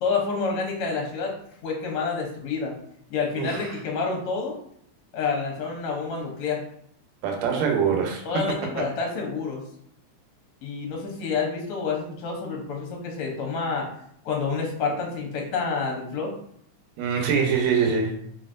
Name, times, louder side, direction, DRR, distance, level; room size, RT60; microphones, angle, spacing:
voice 1, 0.0-1.3 1.6-2.7 3.1-4.6 5.1-6.6 8.2-9.6 10.6-13.9 14.2-16.3, left 4 dB, 70° left, 0 dB, 1.4 m, -28 dB
voice 2, 3.4-3.8 7.2-8.7 17.0-18.2, right 6 dB, 70° right, 2 dB, 1.9 m, -24 dB
4.4 x 4.1 x 2.5 m, 0.68 s
omnidirectional pair, 3.5 m